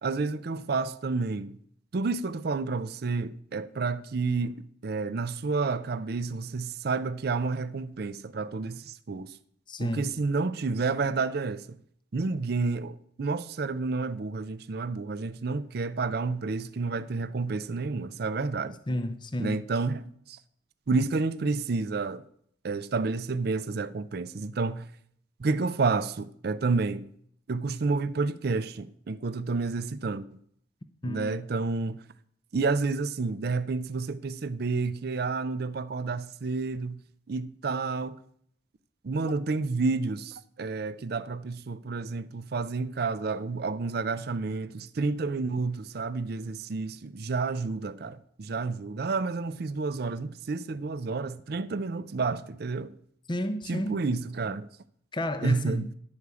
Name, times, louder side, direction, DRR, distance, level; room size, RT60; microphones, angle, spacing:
voice 1, 0.0-1.5 1.9-4.6 4.8-9.3 9.8-11.6 12.1-18.7 19.4-20.1 20.9-22.2 22.6-24.8 25.4-27.0 27.5-30.2 31.0-32.0 32.5-37.0 37.3-38.2 39.0-52.9 53.7-54.7 55.4-55.9, right 4 dB, 55° right, 0.5 m, -30 dB
voice 2, 9.7-10.2 18.9-19.6 31.0-31.4 53.3-54.0 55.1-55.9, left 1 dB, 25° left, 0.6 m, -31 dB
10.5 x 4.8 x 6.9 m
head